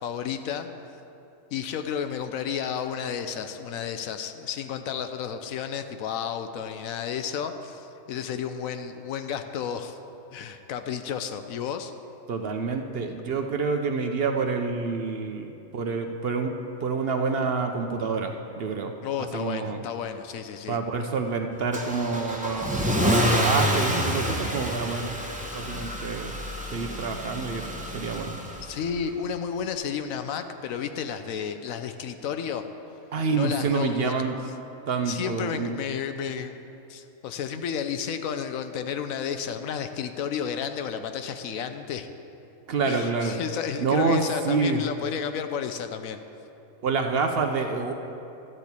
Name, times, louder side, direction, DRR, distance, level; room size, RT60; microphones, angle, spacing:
voice 1, 0.0-0.7 1.5-10.0 10.3-11.9 19.0-20.8 28.6-32.6 33.3-34.1 35.1-36.6 36.9-42.1 42.9-46.2, left 7 dB, 85° left, 8 dB, 1.1 m, -32 dB
voice 2, 12.3-16.5 16.8-18.9 19.2-19.8 20.7-25.1 25.5-26.3 26.7-27.7 27.9-28.4 33.1-34.4 34.9-35.7 42.7-43.4 43.8-44.8 46.8-47.9, right 4 dB, 55° right, 4 dB, 0.7 m, -27 dB
Car / Engine starting / Accelerating revving vroom, 21.7-28.8, equal, 5° right, 0.7 m, -28 dB
12.5 x 4.4 x 8.2 m, 2.8 s
omnidirectional pair, 1.4 m